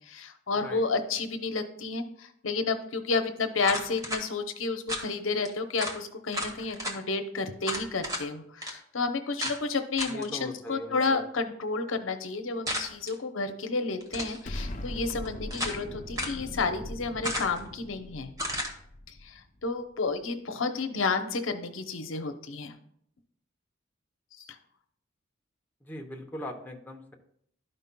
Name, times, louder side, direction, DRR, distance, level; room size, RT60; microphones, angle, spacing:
voice 1, 0.0-18.3 19.2-22.7 24.3-24.5, left 4 dB, 85° left, 7 dB, 0.8 m, -31 dB
sound 1, 3.6-4.2 4.9-5.1 5.5-5.6 5.8-6.0 6.3-7.0 7.6-8.3 8.6-8.7 9.4-9.6 10.0-10.3 12.7-13.1 14.0-14.4 15.1-15.8 16.2-16.4 17.2-17.7 18.4-18.7, equal, 20° right, 1.1 m, -33 dB
voice 2, 10.1-11.2 25.8-27.1, left 1 dB, 10° left, 1 dB, 0.8 m, -40 dB
Explosion, 14.5-19.6, left 1 dB, 40° left, 0.6 m, -40 dB
12.5 x 5.4 x 2.2 m, 0.68 s
head